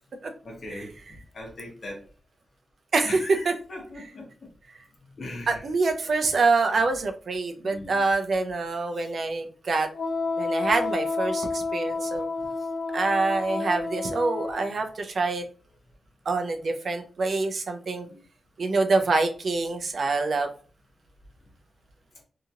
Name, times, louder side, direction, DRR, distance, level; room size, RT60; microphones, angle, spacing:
voice 1, 0.4-2.0 3.0-4.5 5.2-5.6 7.6-8.0 8.9-9.1 18.1-18.2, left 2 dB, 50° left, -2 dB, 1.0 m, -40 dB
voice 2, 5.5-9.9 10.4-12.2 12.9-15.4 16.3-18.1 18.6-20.5, right 3 dB, 55° right, 5 dB, 0.5 m, -26 dB
Wind instrument woodwind instrument, 9.9-14.7, left 3 dB, 65° left, 0.4 m, -30 dB
2.8 x 2.7 x 2.4 m, 0.39 s
wide cardioid pair, 145°, 0 cm